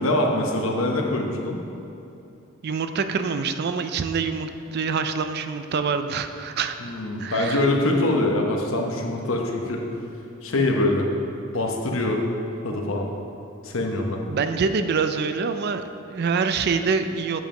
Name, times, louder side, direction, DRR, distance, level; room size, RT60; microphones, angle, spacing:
voice 1, 0.0-1.6 6.8-9.8 10.4-11.1 11.5-12.2 12.6-13.1 13.6-14.2, left 1 dB, 70° left, 1 dB, 1.0 m, -24 dB
voice 2, 2.6-6.8 7.2-7.6 14.3-17.4, right 5 dB, 50° right, 9 dB, 0.4 m, -25 dB
8.1 x 7.2 x 3.8 m, 2.9 s
head